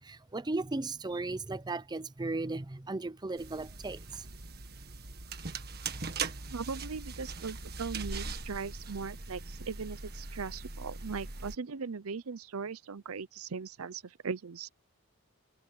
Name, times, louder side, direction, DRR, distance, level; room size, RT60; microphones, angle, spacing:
voice 1, 0.0-4.3, right 2 dB, 20° right, 0.6 m, -36 dB
sound 1, 3.4-11.6, right 4 dB, 50° right, 1.7 m, -41 dB
voice 2, 6.5-14.7, right 5 dB, 80° right, 0.7 m, -39 dB
head